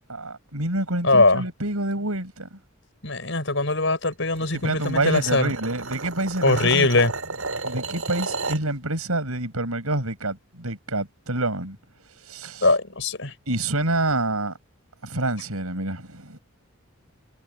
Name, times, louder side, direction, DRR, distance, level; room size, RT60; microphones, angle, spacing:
voice 1, 0.1-2.5 4.5-7.0 7.6-11.8 12.3-12.7 13.5-14.5 15.0-16.4, right 2 dB, 90° right, 7.2 m, -27 dB
voice 2, 1.0-1.4 3.0-5.5 6.4-7.1 12.6-13.3, left 3 dB, 60° left, 7.8 m, -21 dB
sound 1, 4.3-8.7, right 3 dB, 75° right, 5.4 m, -33 dB
head